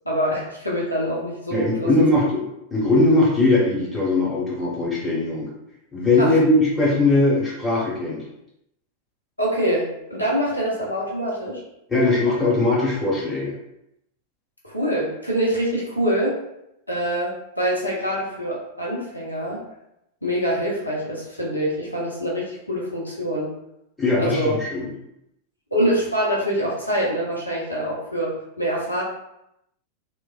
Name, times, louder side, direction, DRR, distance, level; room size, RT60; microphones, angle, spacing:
voice 1, 0.0-1.9 6.2-6.3 9.4-11.6 14.6-16.4 16.9-19.6 20.2-23.5 24.2-24.6 25.7-29.0, equal, 85° left, -5 dB, 0.7 m, -25 dB
voice 2, 1.5-2.4 2.7-5.5 5.9-8.2 11.9-13.5 24.0-24.9, left 2 dB, 5° left, -6 dB, 1.1 m, -20 dB
3.1 x 2.2 x 2.4 m, 0.83 s
figure-of-eight pair, 90°, 0 cm